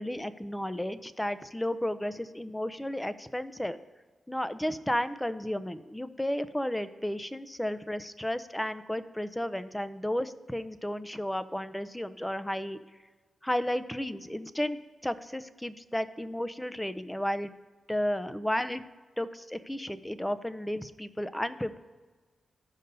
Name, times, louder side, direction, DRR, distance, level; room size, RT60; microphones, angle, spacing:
voice 1, 0.0-3.8 4.3-12.8 13.4-17.5 17.9-18.8 19.2-21.8, left 1 dB, 10° left, 13 dB, 0.5 m, -33 dB
14.5 x 5.4 x 2.7 m, 1.4 s
cardioid pair, 55°, 0 cm